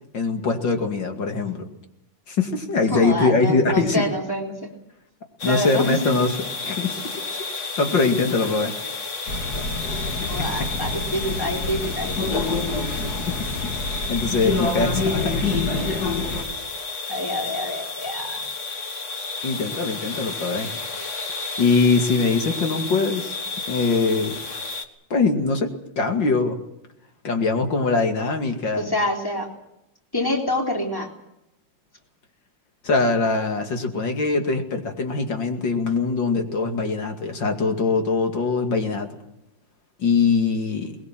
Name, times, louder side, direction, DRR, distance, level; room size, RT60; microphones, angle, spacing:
voice 1, 0.1-1.7 2.3-4.0 5.4-6.3 6.6-7.2 7.8-8.7 10.2-10.3 13.3-13.5 14.1-15.9 19.4-20.7 21.6-23.4 23.7-24.4 25.1-26.6 27.2-28.9 32.8-39.1 40.0-41.0, left 4 dB, 80° left, 4 dB, 3.0 m, -22 dB
voice 2, 2.9-4.7 5.4-6.0 9.9-12.2 17.1-18.4 28.8-29.5 30.1-31.1, left 1 dB, 10° left, 1 dB, 3.4 m, -27 dB
sound 1, 5.4-24.9, left 4 dB, 45° left, 1.9 m, -32 dB
sound 2, 9.3-16.4, left 3 dB, 60° left, 2.8 m, -27 dB
22.0 x 21.0 x 7.5 m, 0.83 s
omnidirectional pair, 2.0 m